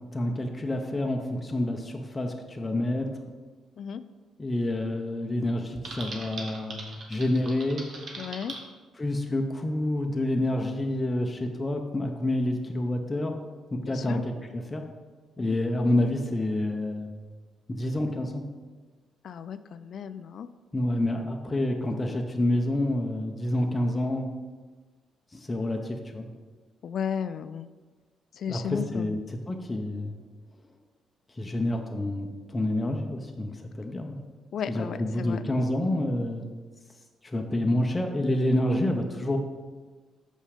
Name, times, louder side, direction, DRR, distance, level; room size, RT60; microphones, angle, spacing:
voice 1, 0.1-3.1 4.4-6.8 7.1-7.8 9.0-13.3 13.7-14.8 15.4-17.1 17.7-18.4 20.7-24.3 25.3-26.3 28.5-29.2 29.5-30.2 31.4-34.2 34.7-36.4 37.2-39.4, left 1 dB, 20° left, 2 dB, 0.8 m, -28 dB
Typing, 5.8-8.6, right 3 dB, 55° right, 1.5 m, -40 dB
voice 2, 8.2-8.5 13.8-14.2 15.4-15.6 19.2-20.5 26.8-27.7 28.3-29.2 34.5-35.4, left 8 dB, 60° left, 13 dB, 0.3 m, -34 dB
6.3 x 5.4 x 5.0 m, 1.4 s
cardioid pair, 90°, 0 cm